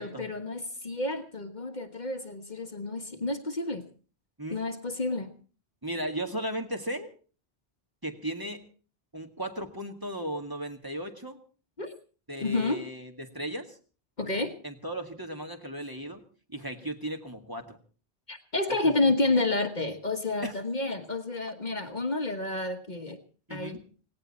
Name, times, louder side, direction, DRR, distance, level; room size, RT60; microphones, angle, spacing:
voice 1, 0.0-3.8 4.5-5.3 11.8-11.9 12.4-12.8 14.2-14.5 18.3-23.2 23.5-23.8, left 2 dB, 45° left, 6 dB, 1.4 m, -30 dB
voice 2, 5.8-7.1 8.0-8.6 9.1-11.4 12.3-13.8 14.6-16.2 16.5-17.8 18.8-19.3 20.4-20.5 23.5-23.8, right 1 dB, 20° right, 4 dB, 2.0 m, -36 dB
18.0 x 18.0 x 4.3 m, 0.39 s
omnidirectional pair, 1.1 m